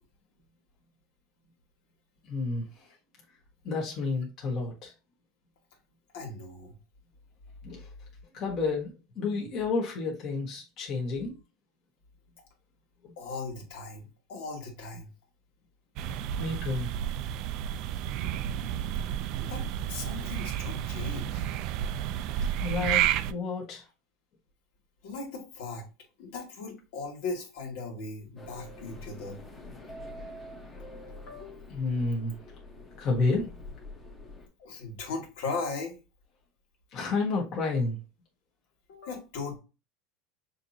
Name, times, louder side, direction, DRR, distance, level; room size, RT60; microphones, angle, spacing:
voice 1, 2.2-2.9 3.6-4.9 7.6-7.9 8.3-11.4 13.0-13.1 16.3-16.9 22.6-23.8 31.7-32.4 33.0-33.5 36.9-38.0, left 3 dB, 40° left, 1.5 m, -30 dB
voice 2, 6.1-6.8 13.2-15.1 19.4-19.6 19.9-21.4 25.0-25.9 26.2-29.4 31.3-31.7 34.6-36.0 38.9-39.6, left 3 dB, 75° left, 2.1 m, -38 dB
sound 1, 16.0-23.3, right 10 dB, 50° right, 0.4 m, -31 dB
sound 2, 28.4-34.5, left 1 dB, 15° left, 1.1 m, -46 dB
6.5 x 3.0 x 2.7 m
supercardioid pair, 150°, 0 cm